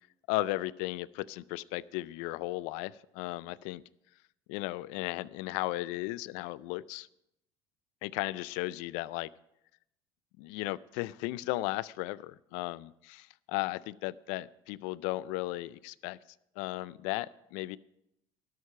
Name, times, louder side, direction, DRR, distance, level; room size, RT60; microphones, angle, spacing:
voice 1, 0.3-3.8 4.5-7.1 8.0-9.3 10.4-16.2 16.6-17.8, left 18 dB, 75° left, 21 dB, 0.4 m, -35 dB
12.0 x 8.3 x 5.6 m, 0.83 s
supercardioid pair, 80°, 13 cm